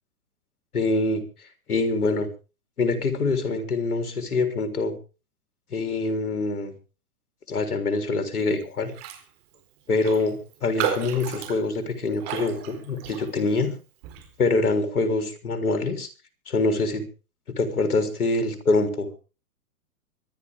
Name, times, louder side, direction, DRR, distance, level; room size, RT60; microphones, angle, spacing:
voice 1, 0.7-1.2 1.7-2.3 2.8-4.9 5.7-6.7 7.5-8.9 9.9-13.7 14.4-16.1 16.5-17.0 17.6-19.1, left 3 dB, 70° left, 7 dB, 3.7 m, -25 dB
Raindrop, 8.9-9.3 9.5-9.6 10.0-13.6 14.0-14.3, right 10 dB, 40° right, 4.3 m, -33 dB
25.0 x 11.0 x 3.6 m, 0.33 s
hypercardioid pair, 120°, 45 cm